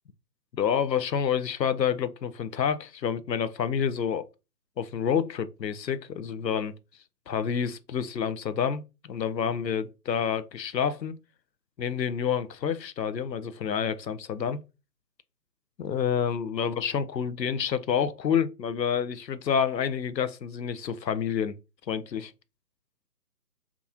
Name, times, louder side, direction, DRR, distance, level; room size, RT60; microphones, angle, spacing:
voice 1, 0.6-4.2 4.8-6.7 7.3-11.1 11.8-14.6 15.8-21.6 21.9-22.3, left 7 dB, 85° left, 0.6 m, -28 dB
3.6 x 2.9 x 2.4 m
figure-of-eight pair, 150°, 49 cm